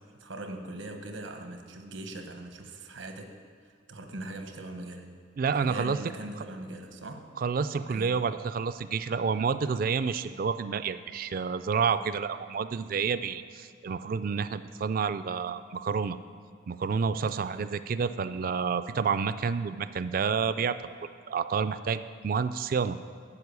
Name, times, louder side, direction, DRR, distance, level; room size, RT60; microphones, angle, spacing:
voice 1, 0.0-3.3 3.9-5.1 5.6-7.3 7.8-8.2 17.3-17.7, right 2 dB, 90° right, 5 dB, 1.1 m, -41 dB
voice 2, 5.4-6.0 7.4-16.2 16.7-20.9 21.3-23.0, right 5 dB, 50° right, 13 dB, 0.3 m, -29 dB
11.0 x 5.3 x 8.2 m, 2.1 s
head